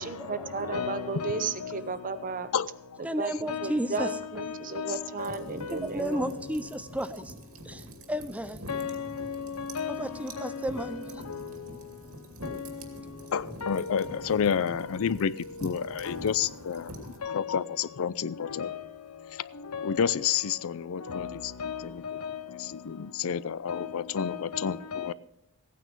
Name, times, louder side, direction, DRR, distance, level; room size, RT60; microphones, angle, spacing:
voice 1, 0.0-2.5 3.2-6.3, right 4 dB, 40° right, 0.9 m, -34 dB
voice 2, 0.6-1.8 3.5-5.0 5.6-5.7 8.7-10.0 10.8-10.9 13.6-13.8 16.0-16.2 17.2-17.4 18.6-18.8 19.7-19.9 21.1-21.3 21.6-22.4 23.7-23.9 24.2-25.1, left 6 dB, 90° left, 0.8 m, -35 dB
voice 3, 2.5-3.0 4.9-5.0 13.3-15.3 15.6-18.7 19.3-19.5 19.8-21.5 21.8-25.1, left 7 dB, 65° left, 0.5 m, -30 dB
voice 4, 3.0-4.1 5.7-7.3 7.6-8.6 10.0-11.2, right 1 dB, 5° right, 0.5 m, -33 dB
sound 1, 5.2-17.2, right 1 dB, 75° right, 2.4 m, -46 dB
16.0 x 9.3 x 5.3 m
head